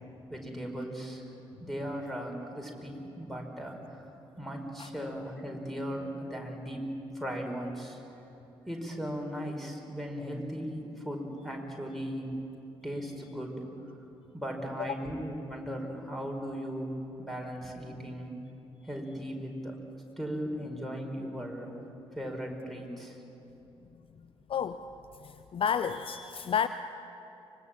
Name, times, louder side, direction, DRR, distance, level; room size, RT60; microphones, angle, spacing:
voice 1, 0.3-1.2 1.6-4.0 4.4-8.0 8.7-12.3 12.8-13.7 14.3-18.4 18.8-19.8 20.2-21.7 22.1-23.2, equal, ahead, 2 dB, 4.8 m, -37 dB
voice 2, 25.2-26.7, left 7 dB, 40° left, 12 dB, 0.6 m, -30 dB
24.5 x 20.5 x 7.4 m, 3.0 s
figure-of-eight pair, 40°, 14 cm